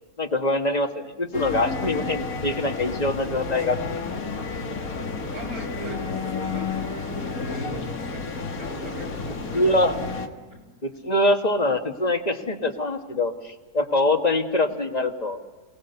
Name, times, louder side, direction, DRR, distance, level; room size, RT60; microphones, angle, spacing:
voice 1, 0.2-4.0 9.5-9.9 10.8-15.4, left 2 dB, 30° left, 5 dB, 1.6 m, -24 dB
sound 1, 1.3-10.3, left 4 dB, 70° left, 2.1 m, -31 dB
voice 2, 4.7-9.6 10.0-10.1 10.5-10.6, equal, 85° right, 0 dB, 6.9 m, -39 dB
28.5 x 19.0 x 6.9 m, 1.3 s
omnidirectional pair, 1.5 m